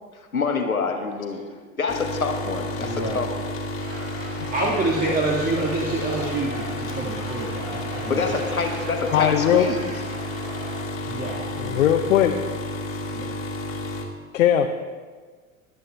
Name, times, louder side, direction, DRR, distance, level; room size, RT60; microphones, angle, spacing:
voice 1, 0.3-1.4 1.8-3.3 8.1-9.8, left 4 dB, 85° left, 4 dB, 1.2 m, -26 dB
sound 1, 1.9-14.0, left 1 dB, 30° left, 1.9 m, -31 dB
voice 2, 2.8-3.2 4.5-8.4 11.1-11.8 13.1-13.3, right 2 dB, 20° right, -2 dB, 1.5 m, -27 dB
sound 2, 3.8-10.8, right 2 dB, 70° right, 1.9 m, -39 dB
voice 3, 9.1-9.7 11.6-12.3 14.3-14.7, left 10 dB, 70° left, 6 dB, 0.7 m, -19 dB
22.5 x 7.7 x 3.3 m, 1.5 s
figure-of-eight pair, 75°, 41 cm